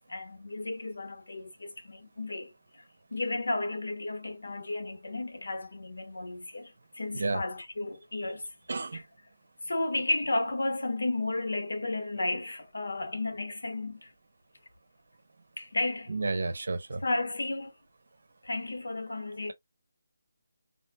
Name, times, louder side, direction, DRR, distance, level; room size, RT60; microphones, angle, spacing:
voice 1, 0.1-2.8 3.1-8.5 8.9-9.0 9.6-14.1 15.6-16.1 17.0-17.7 18.4-19.5, left 2 dB, 85° left, 0.9 m, -33 dB
voice 2, 8.7-9.0 16.1-17.0, right 3 dB, 55° right, 0.8 m, -31 dB
3.7 x 2.6 x 2.2 m
hypercardioid pair, 175°, 0 cm